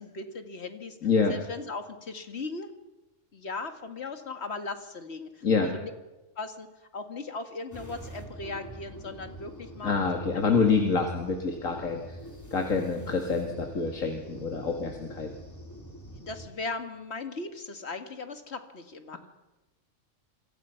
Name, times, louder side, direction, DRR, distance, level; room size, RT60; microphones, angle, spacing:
voice 1, 0.0-1.0 1.3-2.7 3.3-5.9 6.4-6.7 6.9-9.9 10.3-10.5 16.2-19.2, left 3 dB, 55° left, 7 dB, 2.2 m, -38 dB
voice 2, 1.0-1.3 5.4-5.7 9.8-12.2 12.5-15.3, left 4 dB, 90° left, 3 dB, 2.5 m, -26 dB
sound 1, 7.7-16.5, equal, 15° left, 3.5 m, -45 dB
27.5 x 24.0 x 5.8 m, 1.1 s
omnidirectional pair, 1.3 m